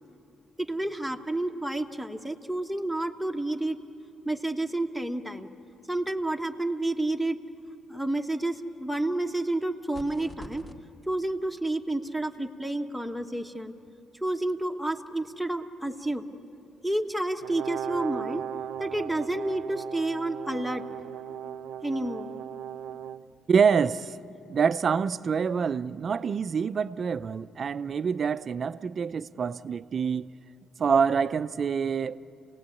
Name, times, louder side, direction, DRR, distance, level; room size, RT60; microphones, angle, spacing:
voice 1, 0.6-3.8 4.2-5.5 5.9-7.4 7.9-10.6 11.1-13.7 14.2-16.3 16.8-18.4 18.8-20.8 21.8-22.3, right 1 dB, 5° left, 1.3 m, -30 dB
sound 1, 9.9-10.8, equal, 30° left, 2.2 m, -44 dB
Brass instrument, 17.4-23.2, right 9 dB, 85° right, 0.6 m, -37 dB
voice 2, 23.5-24.1 24.5-30.3 30.8-32.2, right 6 dB, 50° right, 0.5 m, -26 dB
28.0 x 18.5 x 8.5 m
cardioid pair, 90°, 0 cm